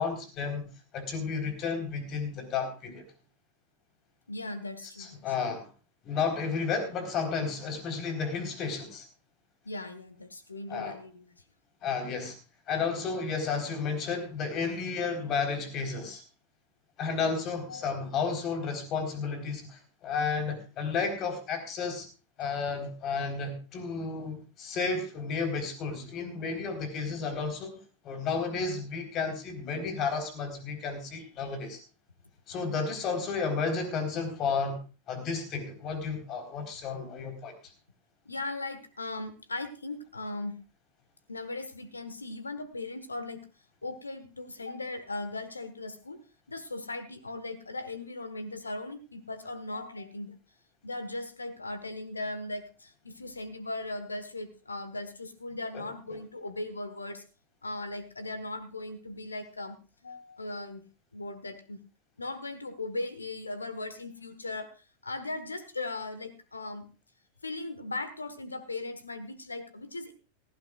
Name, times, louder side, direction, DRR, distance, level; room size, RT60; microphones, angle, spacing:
voice 1, 0.0-3.0 5.0-5.7 6.0-9.0 10.7-11.0 11.8-12.4 12.7-16.2 17.0-22.1 22.4-27.8 28.0-31.8 32.5-34.8 35.1-37.5 55.7-55.8, left 5 dB, 35° left, 5 dB, 4.1 m, -32 dB
voice 2, 4.3-5.3 9.6-11.4 17.7-18.0 38.2-40.6 41.3-43.4 43.8-46.2 46.5-50.3 50.8-57.2 57.6-59.8 60.0-60.8 61.1-61.8 62.2-64.7 65.0-66.9 67.4-70.1, left 2 dB, 80° left, 12 dB, 1.4 m, -38 dB
18.0 x 15.5 x 2.4 m, 0.33 s
figure-of-eight pair, 90°, 0 cm